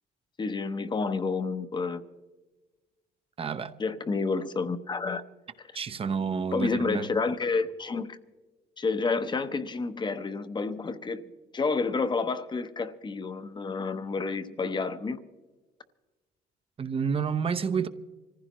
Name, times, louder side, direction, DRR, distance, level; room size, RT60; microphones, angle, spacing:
voice 1, 0.4-2.0 3.8-5.2 6.5-8.2 8.8-11.2 11.5-15.2, left 4 dB, 25° left, 0.9 m, -29 dB
voice 2, 3.4-3.7 5.7-7.1 16.8-17.9, right 6 dB, 35° right, 0.8 m, -29 dB
25.0 x 15.5 x 3.0 m
cardioid pair, 110°, 17 cm